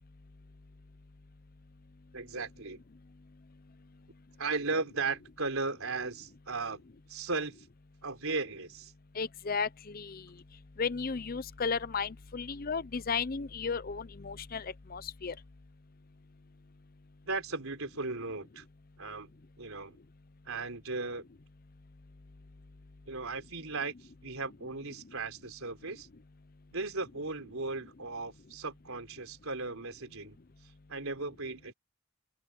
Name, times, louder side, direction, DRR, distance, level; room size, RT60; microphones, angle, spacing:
voice 1, 2.1-2.8 4.4-6.8 7.1-7.7 8.0-8.9 17.2-18.6 19.0-19.3 19.6-20.0 20.5-21.2 23.1-26.1 26.7-30.4 30.9-31.7, right 3 dB, 90° right, 3.9 m, -36 dB
voice 2, 9.1-15.4, left 5 dB, 45° left, 0.6 m, -35 dB
open air
head